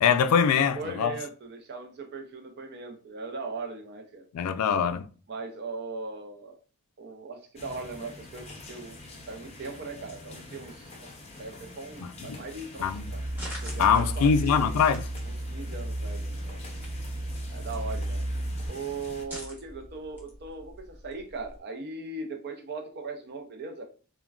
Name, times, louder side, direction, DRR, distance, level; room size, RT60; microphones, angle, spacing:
voice 1, 0.0-1.1 4.3-5.1 12.0-12.4 12.8-13.0 13.8-15.1, left 7 dB, 80° left, 0.3 m, -23 dB
voice 2, 0.5-4.3 5.3-6.6 7.0-11.1 11.4-13.2 13.6-14.8 15.3-16.7 17.5-18.2 18.7-23.8, right 3 dB, 45° right, 0.5 m, -39 dB
sound 1, 7.6-19.3, left 2 dB, 30° left, 0.5 m, -46 dB
sound 2, 12.7-18.7, right 1 dB, 85° right, 1.0 m, -34 dB
sound 3, 13.0-21.6, equal, 10° right, 0.9 m, -47 dB
3.5 x 2.2 x 2.3 m
head